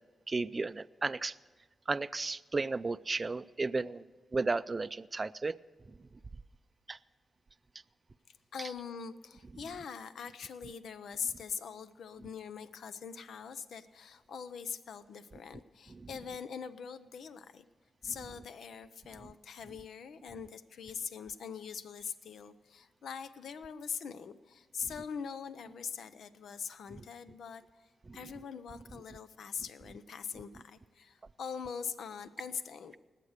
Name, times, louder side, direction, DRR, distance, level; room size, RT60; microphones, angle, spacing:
voice 1, 0.3-1.3 1.9-4.0 4.3-5.6 6.9-7.0 15.9-16.1 24.8-24.9 28.1-28.2, right 3 dB, 30° right, 13 dB, 0.4 m, -34 dB
voice 2, 8.5-17.6 18.0-27.6 28.1-33.0, left 6 dB, 80° left, 12 dB, 0.7 m, -42 dB
19.5 x 8.3 x 6.6 m, 1.5 s
cardioid pair, 90°, 0 cm